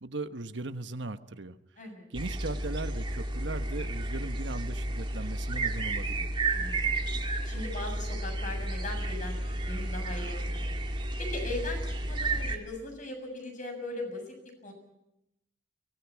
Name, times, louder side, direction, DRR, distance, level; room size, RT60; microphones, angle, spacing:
voice 1, 0.0-1.6 2.1-6.3, right 2 dB, 85° right, 10 dB, 1.2 m, -38 dB
sound 1, 2.1-12.6, right 2 dB, 30° right, 1.9 m, -32 dB
voice 2, 6.5-7.1 7.4-10.7 11.2-14.4 14.6-14.7, left 2 dB, 45° left, 4 dB, 7.3 m, -39 dB
24.0 x 19.0 x 8.5 m, 0.86 s
head